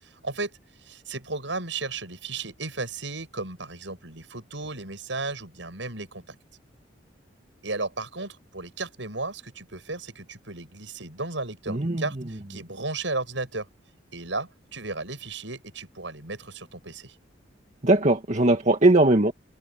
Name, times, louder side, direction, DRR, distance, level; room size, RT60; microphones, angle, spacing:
voice 1, 0.0-6.4 7.6-13.7 14.1-17.1, right 3 dB, 80° right, 7.5 m, -34 dB
voice 2, 11.7-12.0 17.8-19.3, right 2 dB, 40° right, 2.0 m, -19 dB
head